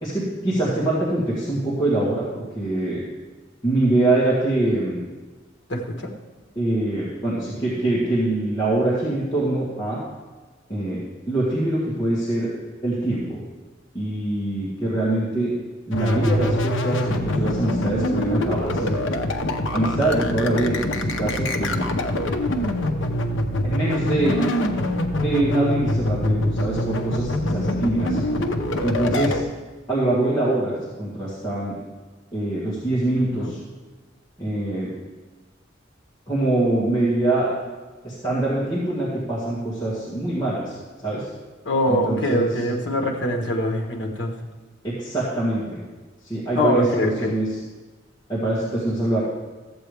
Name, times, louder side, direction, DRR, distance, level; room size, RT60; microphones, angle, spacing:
voice 1, 0.0-3.0 3.6-5.0 6.6-10.0 10.7-11.0 11.3-12.5 12.8-13.4 13.9-15.5 15.9-19.0 19.7-22.0 23.6-24.4 25.2-28.2 28.8-29.4 29.9-31.8 32.3-33.6 34.4-34.9 36.3-37.5 38.0-40.7 41.0-41.3 41.9-42.5 44.8-45.8 46.2-47.5 48.3-49.2, right 2 dB, 20° left, -9 dB, 2.0 m, -24 dB
voice 2, 5.7-6.1 33.1-33.5 41.6-44.3 46.6-47.4, left 1 dB, 70° left, 1 dB, 1.3 m, -23 dB
sound 1, 15.9-29.4, left 1 dB, 85° left, 0.8 m, -24 dB
13.5 x 7.9 x 3.4 m, 1.3 s
head